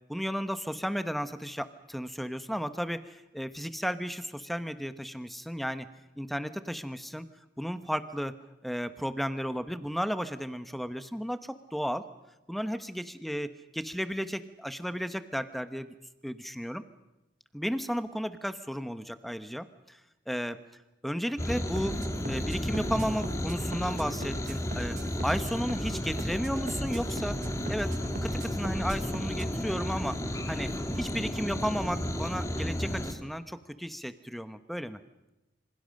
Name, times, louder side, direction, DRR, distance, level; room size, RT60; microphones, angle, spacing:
voice 1, 0.1-5.9 6.2-7.3 7.6-8.3 8.6-12.1 12.5-15.9 16.2-16.8 17.5-20.0 20.3-20.6 21.0-25.0 25.2-27.4 27.7-30.2 30.5-35.0, equal, ahead, 11 dB, 1.0 m, -34 dB
sound 1, 21.4-33.1, equal, 15° left, 1.9 m, -33 dB
sound 2, 21.8-29.5, right 1 dB, 45° right, 1.5 m, -41 dB
26.5 x 26.0 x 6.5 m, 0.98 s
head